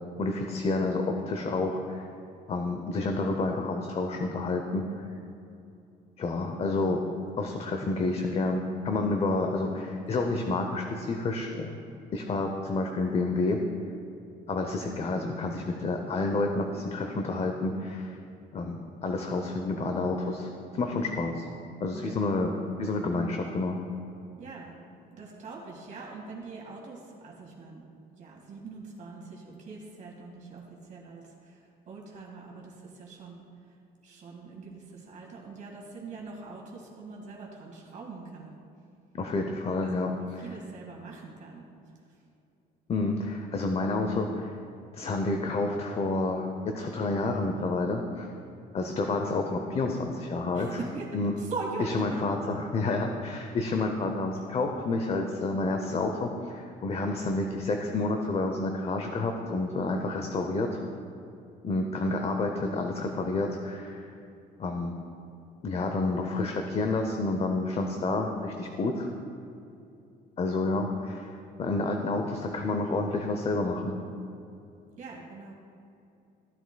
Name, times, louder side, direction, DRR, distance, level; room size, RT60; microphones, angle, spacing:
voice 1, 0.2-2.0 2.5-5.1 6.2-7.0 7.4-11.8 12.1-13.6 14.5-18.2 18.5-21.5 21.8-22.5 22.8-23.8 39.1-40.5 42.9-44.5 44.9-48.3 48.7-50.8 51.1-51.3 51.8-60.8 61.6-64.1 64.6-64.9 65.6-69.1 70.4-71.3 71.6-74.0, left 3 dB, 35° left, 4 dB, 0.7 m, -29 dB
voice 2, 24.4-24.7 25.1-27.9 28.2-33.4 34.0-38.6 39.8-41.7 50.5-52.0 75.0-75.5, right 3 dB, 45° right, -3 dB, 1.9 m, -42 dB
14.5 x 7.9 x 2.3 m, 2.6 s
cardioid pair, 110°, 17 cm